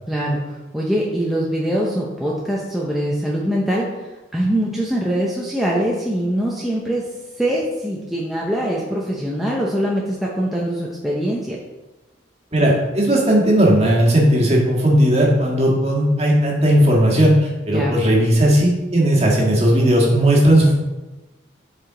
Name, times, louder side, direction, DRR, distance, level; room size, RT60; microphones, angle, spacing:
voice 1, 0.1-0.4 0.7-3.9 4.3-7.0 7.4-11.6 17.7-18.0, equal, ahead, -4 dB, 0.6 m, -22 dB
voice 2, 12.5-20.7, right 1 dB, 35° right, -3 dB, 1.6 m, -16 dB
7.4 x 4.9 x 3.8 m, 1.1 s
head